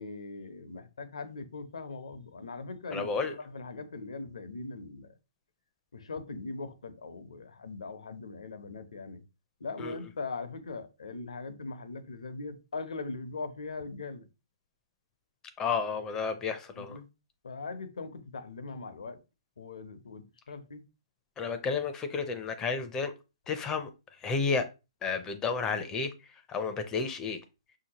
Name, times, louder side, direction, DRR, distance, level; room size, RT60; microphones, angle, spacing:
voice 1, 0.0-5.2 5.9-9.2 9.6-14.3 16.8-17.1 17.4-19.2 19.6-20.8, left 3 dB, 85° left, 0.8 m, -40 dB
voice 2, 2.9-3.3 9.8-10.0 15.6-17.0 21.4-23.1 23.5-24.7 25.0-27.4, left 5 dB, 20° left, 0.6 m, -32 dB
5.8 x 2.9 x 2.9 m
hypercardioid pair, 140°, 3 cm